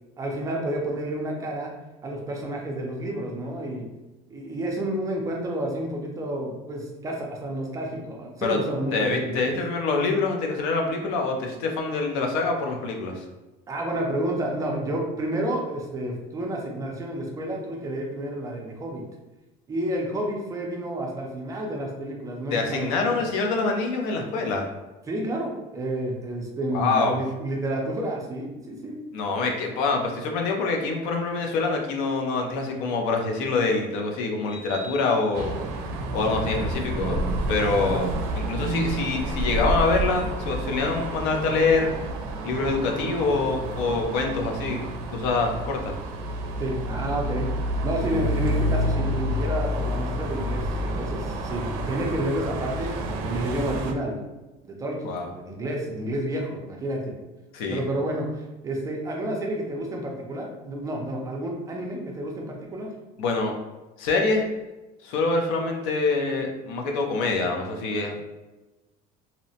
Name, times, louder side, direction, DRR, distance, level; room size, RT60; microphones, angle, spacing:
voice 1, 0.2-1.7 2.0-3.9 4.3-9.6 13.7-19.0 19.7-23.3 25.1-29.1 37.8-38.0 46.6-47.5 47.8-52.9 53.2-54.2 54.6-57.1 57.7-62.9, right 1 dB, 20° right, 0 dB, 0.4 m, -30 dB
voice 2, 8.9-13.2 22.5-24.7 26.7-27.2 29.1-35.6 36.1-37.2 37.5-38.1 38.4-41.9 42.4-44.8 45.1-45.9 55.1-55.3 57.5-57.8 63.2-63.5 64.0-64.5 65.0-68.2, left 3 dB, 85° left, 2 dB, 0.5 m, -25 dB
sound 1, 34.4-35.9, right 2 dB, 25° left, 0.6 m, -44 dB
sound 2, 35.3-53.9, right 1 dB, 80° right, 0.4 m, -29 dB
2.7 x 2.0 x 2.7 m, 1.1 s
cardioid pair, 155°, 17 cm